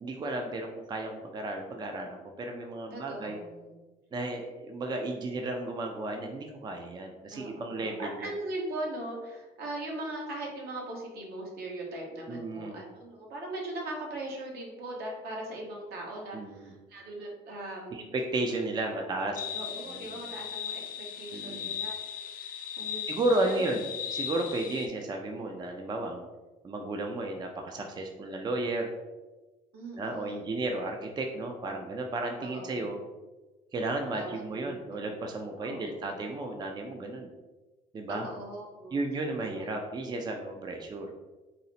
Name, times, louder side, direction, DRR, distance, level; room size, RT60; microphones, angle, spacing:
voice 1, 0.0-3.4 4.1-8.3 12.3-12.8 16.3-16.7 17.9-19.4 19.9-20.2 21.3-21.7 23.1-26.3 26.6-28.9 30.0-33.0 33.7-37.3 37.9-38.2 38.9-41.1, right 2 dB, 25° right, 3 dB, 0.4 m, -33 dB
voice 2, 2.9-3.8 7.3-18.1 18.5-18.6 18.9-22.0 22.3-23.6 29.7-30.5 32.4-32.9 34.2-34.3 34.5-35.2 35.6-36.2 38.1-39.0 39.4-39.7, right 1 dB, 70° right, -1 dB, 1.1 m, -40 dB
sound 1, 19.4-24.9, left 8 dB, 55° left, 0.4 m, -37 dB
3.9 x 2.0 x 4.1 m, 1.1 s
cardioid pair, 110°, 17 cm